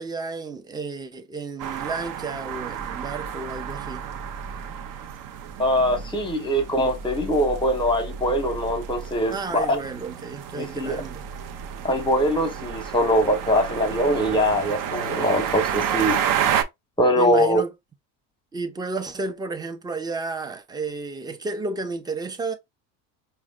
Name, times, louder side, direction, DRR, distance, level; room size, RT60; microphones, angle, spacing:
voice 1, 0.0-4.0 9.3-11.2 17.2-17.7 18.5-22.5, right 3 dB, 10° right, 0.5 m, -32 dB
sound 1, 1.6-16.6, right 8 dB, 60° right, 0.7 m, -31 dB
voice 2, 5.6-9.7 10.6-11.0 11.8-16.2 17.0-17.6, equal, 15° left, 1.0 m, -22 dB
4.8 x 2.2 x 2.3 m
supercardioid pair, 110°, 38 cm